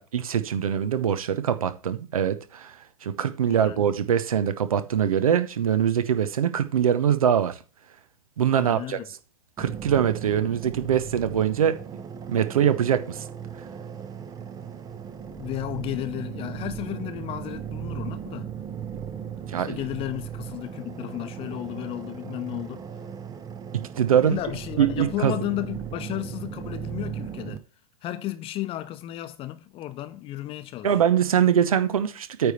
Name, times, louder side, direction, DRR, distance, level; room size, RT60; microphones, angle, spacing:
voice 1, 0.0-2.8 3.0-7.6 8.4-9.0 9.6-11.8 12.3-13.2 19.5-19.8 23.7-24.4 24.8-25.3 30.8-32.5, right 9 dB, 70° right, 0.9 m, -23 dB
voice 2, 3.4-3.8 8.6-9.0 15.3-18.5 19.7-22.8 24.2-27.6 28.0-30.9, left 15 dB, 30° left, 0.9 m, -33 dB
sound 1, 9.6-27.6, right 8 dB, 20° right, 0.7 m, -37 dB
9.1 x 3.5 x 6.8 m
figure-of-eight pair, 100°, 19 cm